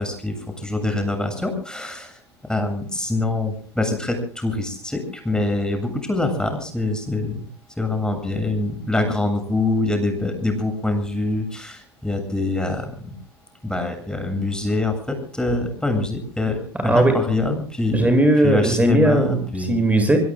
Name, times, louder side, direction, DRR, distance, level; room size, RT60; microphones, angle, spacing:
voice 1, 0.0-2.2 2.5-7.4 7.8-13.2 13.6-18.0 18.4-19.7, left 2 dB, 5° left, 7 dB, 7.7 m, -24 dB
voice 2, 16.8-17.2 17.9-19.3 19.7-20.2, right 1 dB, 10° right, 6 dB, 7.9 m, -17 dB
25.0 x 24.5 x 2.4 m, 0.43 s
figure-of-eight pair, 70°, 14 cm